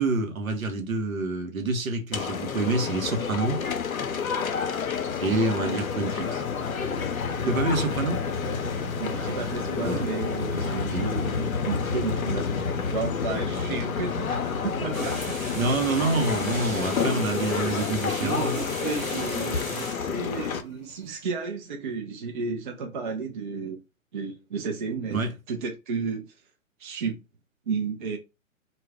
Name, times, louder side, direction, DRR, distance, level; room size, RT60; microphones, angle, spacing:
voice 1, 0.0-3.6 5.2-6.4 7.5-8.2 9.8-10.0 10.5-11.0 15.5-18.5 25.1-25.3, right 3 dB, 80° right, 0.9 m, -27 dB
sound 1, 2.1-20.6, left 6 dB, 80° left, 0.6 m, -30 dB
sound 2, 2.3-21.1, left 3 dB, 50° left, 0.8 m, -35 dB
voice 2, 9.0-15.3 16.4-16.9 18.2-23.8 24.1-26.3 26.8-27.2 27.7-28.2, right 5 dB, 40° right, 0.5 m, -33 dB
sound 3, 14.9-19.9, equal, ahead, 0.8 m, -37 dB
2.3 x 2.1 x 3.4 m
figure-of-eight pair, 125°, 41 cm